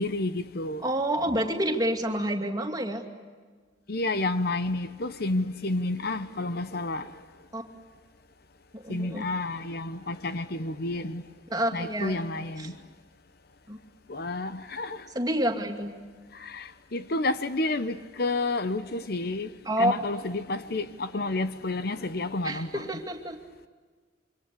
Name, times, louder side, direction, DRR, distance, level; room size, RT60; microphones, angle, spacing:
voice 1, 0.0-0.8 3.9-7.1 8.9-11.2 11.7-12.8 14.1-15.0 16.4-19.5 19.8-22.9, left 2 dB, 55° left, 1.0 m, -30 dB
voice 2, 0.8-3.0 7.5-7.6 8.7-9.3 11.5-12.2 12.6-12.7 13.7-13.8 15.1-16.0 19.6-19.9 22.4-23.4, right 1 dB, 20° right, 2.5 m, -28 dB
26.5 x 25.0 x 8.4 m
head